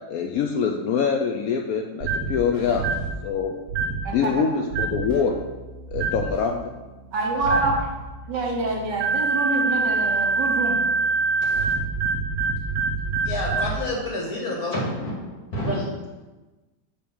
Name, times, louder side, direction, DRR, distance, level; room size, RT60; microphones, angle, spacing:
voice 1, 0.1-2.8 3.2-3.5 4.1-5.3 5.9-6.7, left 6 dB, 90° left, 2 dB, 0.7 m, -24 dB
sound 1, 2.0-2.4 2.8-3.1 3.7-4.1 4.7-5.1 5.9-6.3 7.4-7.8 9.0-13.8, right 4 dB, 85° right, 0.5 m, -24 dB
Keyboard (musical), 2.5-3.1 5.1-14.0, right 2 dB, 15° left, 2.0 m, -43 dB
voice 2, 7.1-7.9 8.3-10.8, right 2 dB, 65° right, 0 dB, 1.7 m, -26 dB
voice 3, 11.4-11.7 13.3-15.8, left 1 dB, 50° left, -3 dB, 2.0 m, -29 dB
6.7 x 3.8 x 5.5 m, 1.2 s
omnidirectional pair, 2.1 m